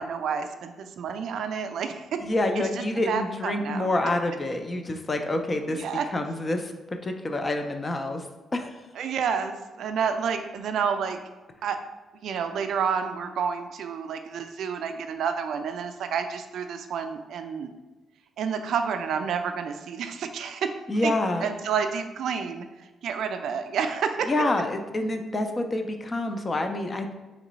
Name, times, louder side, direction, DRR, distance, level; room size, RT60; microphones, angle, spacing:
voice 1, 0.0-2.0 2.6-2.7 3.1-3.9 5.7-6.1 9.0-11.2 11.6-11.8 12.2-17.7 18.4-20.7 21.0-21.1 21.4-22.6 23.0-24.3, right 6 dB, 65° right, 7 dB, 0.3 m, -29 dB
voice 2, 2.2-5.8 6.1-8.3 8.5-8.7 20.9-21.5 24.3-27.1, left 2 dB, 25° left, 6 dB, 0.3 m, -27 dB
3.1 x 2.9 x 3.9 m, 1.2 s
cardioid pair, 150°, 0 cm